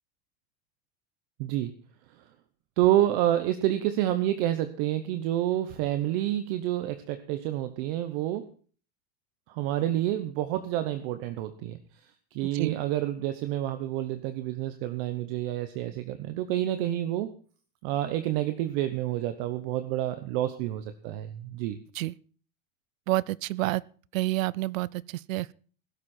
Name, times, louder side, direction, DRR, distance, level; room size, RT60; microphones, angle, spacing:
voice 1, 1.4-1.7 2.8-8.5 9.5-11.8 12.3-17.3 17.8-21.8, right 13 dB, 45° right, 0.9 m, -28 dB
voice 2, 23.1-23.8 24.1-25.5, right 17 dB, 80° right, 0.7 m, -29 dB
16.0 x 12.5 x 4.4 m
supercardioid pair, 170°, 39 cm